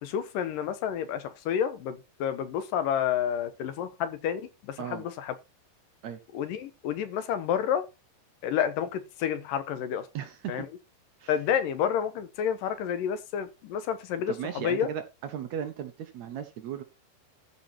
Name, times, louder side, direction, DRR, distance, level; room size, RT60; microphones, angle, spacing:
voice 1, 0.0-4.4 4.7-5.3 6.3-7.8 8.4-10.0 10.5-10.7 11.3-14.9, left 9 dB, 80° left, 2.7 m, -29 dB
voice 2, 10.1-10.7 11.2-11.4 14.3-16.8, right 9 dB, 65° right, 1.9 m, -36 dB
13.5 x 5.5 x 4.4 m
omnidirectional pair, 4.0 m